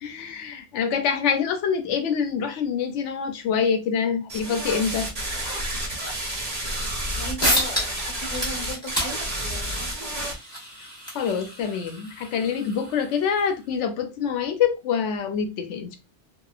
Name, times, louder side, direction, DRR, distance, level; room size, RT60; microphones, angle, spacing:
voice 1, 0.0-5.1 11.1-16.0, left 7 dB, 80° left, 0.9 m, -25 dB
sound 1, 4.3-10.3, right 1 dB, 45° right, 1.2 m, -30 dB
voice 2, 7.1-10.2, equal, 50° left, 0.8 m, -37 dB
sound 2, 7.4-8.1 8.3-13.5, equal, 5° left, 1.1 m, -30 dB
2.8 x 2.2 x 2.3 m
omnidirectional pair, 1.2 m